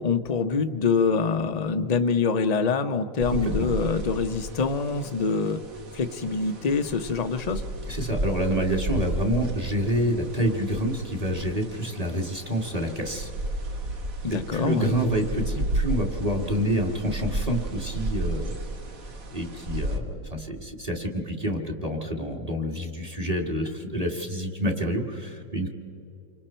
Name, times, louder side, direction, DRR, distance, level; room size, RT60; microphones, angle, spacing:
voice 1, 0.0-5.6 5.9-7.6 14.2-14.9, left 5 dB, 35° left, 8 dB, 0.7 m, -25 dB
sound 1, 3.2-20.0, right 1 dB, 60° right, 1.9 m, -33 dB
voice 2, 7.9-13.3 14.5-18.6 19.3-25.7, equal, 25° right, 2 dB, 1.9 m, -28 dB
28.5 x 24.5 x 4.4 m, 2.7 s
omnidirectional pair, 1.7 m